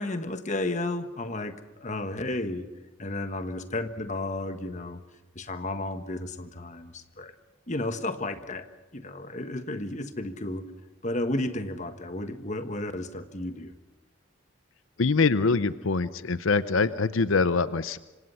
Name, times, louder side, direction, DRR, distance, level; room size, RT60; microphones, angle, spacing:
voice 1, 0.0-2.7 3.0-5.0 5.3-7.3 7.7-8.7 8.9-10.6 11.0-13.7, left 2 dB, 35° left, 9 dB, 1.4 m, -32 dB
voice 2, 15.0-18.0, left 4 dB, 85° left, 14 dB, 0.7 m, -24 dB
26.0 x 26.0 x 5.7 m, 1.1 s
head